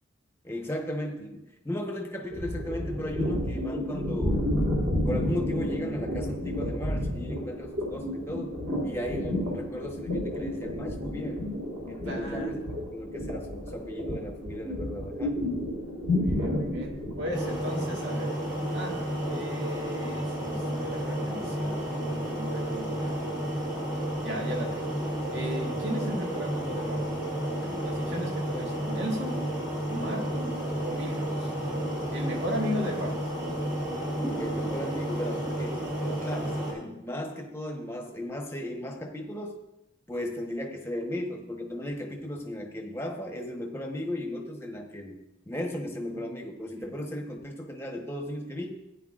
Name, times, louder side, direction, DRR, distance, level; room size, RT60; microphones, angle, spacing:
voice 1, 0.4-4.6 5.0-8.5 8.8-11.4 11.9-15.4 34.4-39.5 40.1-45.2 45.5-48.8, left 1 dB, 10° left, 2 dB, 1.1 m, -36 dB
sound 1, 2.3-17.7, left 1 dB, 50° right, 3.7 m, -31 dB
voice 2, 12.1-12.6 16.1-18.3 18.7-19.0 19.3-23.2 24.2-24.9 25.3-27.1 27.6-29.5 29.9-31.5 32.1-33.2 46.1-46.2 46.8-46.9, equal, 70° right, 0 dB, 1.8 m, -36 dB
sound 2, 17.3-36.7, right 1 dB, 20° right, 2.8 m, -31 dB
15.0 x 9.3 x 2.5 m, 0.93 s
head